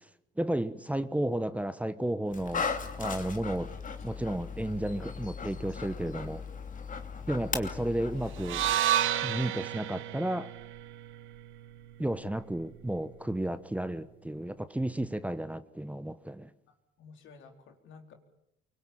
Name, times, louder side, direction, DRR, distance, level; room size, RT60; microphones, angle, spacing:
voice 1, 0.4-2.7 3.0-3.7 4.0-6.4 7.3-8.6 9.2-10.5 12.0-16.5, right 1 dB, 5° right, 1.2 m, -32 dB
Dog, 2.3-8.7, left 5 dB, 40° left, 2.8 m, -37 dB
sound 1, 8.4-12.6, right 12 dB, 85° right, 1.4 m, -32 dB
voice 2, 16.7-18.1, left 5 dB, 75° left, 4.1 m, -53 dB
25.0 x 23.5 x 9.0 m
cardioid pair, 90°, 20 cm